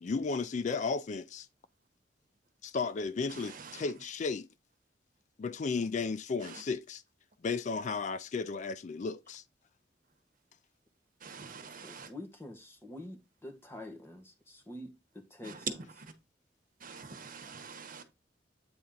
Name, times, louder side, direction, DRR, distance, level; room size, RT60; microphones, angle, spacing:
voice 1, 0.0-1.5 2.6-4.5 5.4-7.0 7.4-9.4, left 4 dB, 45° left, 0.4 m, -34 dB
voice 2, 3.3-3.9 6.4-6.6 11.2-12.1 15.4-15.6 16.0-16.1 16.8-18.0, right 5 dB, 50° right, 1.2 m, -47 dB
voice 3, 11.8-15.8, left 1 dB, 15° left, 1.5 m, -47 dB
8.6 x 4.1 x 3.8 m
head